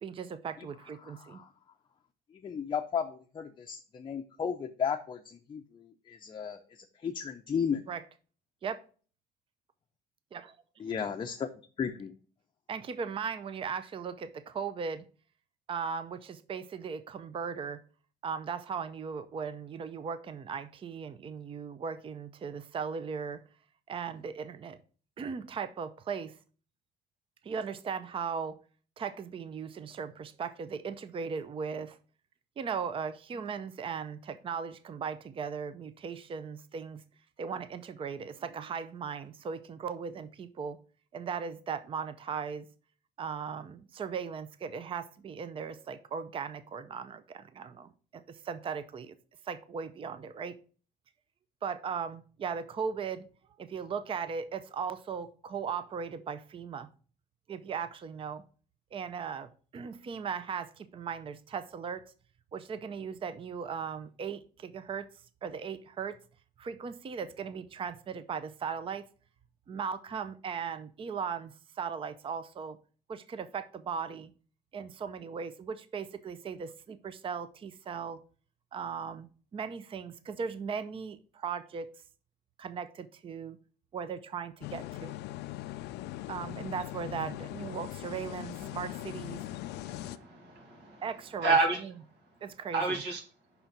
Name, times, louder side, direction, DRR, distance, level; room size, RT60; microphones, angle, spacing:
voice 1, 0.0-1.4 7.9-8.0 8.6-8.8 10.3-10.6 12.7-15.0 15.7-17.8 18.2-23.4 23.9-24.8 25.2-26.4 27.4-28.6 29.0-32.0 32.6-37.0 37.4-40.8 41.1-42.7 43.2-49.1 49.4-50.6 51.6-53.3 53.6-56.9 57.5-58.4 58.9-62.1 62.5-65.1 65.4-66.2 66.6-69.1 69.7-72.8 73.1-74.3 74.7-78.2 78.7-79.3 79.5-81.9 82.6-83.6 83.9-85.1 86.3-89.4 91.0-91.9 92.4-93.0, right 6 dB, 30° right, 0.5 m, -38 dB
voice 2, 1.0-1.5 2.4-6.6 7.0-7.9 10.8-11.5 11.8-12.1, left 7 dB, 30° left, 0.5 m, -34 dB
sound 1, 84.6-90.2, left 15 dB, 80° left, 0.4 m, -40 dB
voice 3, 89.5-91.0 91.4-91.8 92.7-93.2, right 3 dB, 80° right, 1.9 m, -30 dB
5.6 x 3.9 x 5.8 m
cardioid pair, 110°, 17 cm